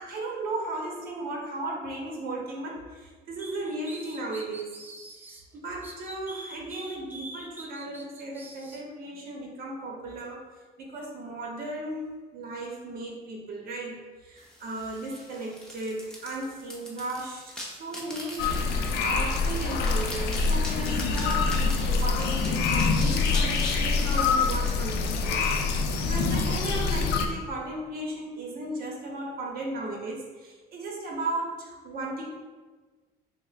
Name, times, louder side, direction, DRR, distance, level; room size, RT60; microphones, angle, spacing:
voice 1, 0.0-4.8 5.5-10.4 10.8-32.2, right 2 dB, 60° right, -1 dB, 0.8 m, -36 dB
sound 1, 3.4-5.4 5.8-8.8, right 2 dB, 10° right, 0.4 m, -44 dB
sound 2, 14.4-26.3, left 1 dB, 5° left, 0.8 m, -43 dB
sound 3, 18.4-27.3, left 4 dB, 75° left, 0.4 m, -25 dB
6.2 x 2.1 x 2.3 m, 1.3 s
cardioid pair, 110°, 17 cm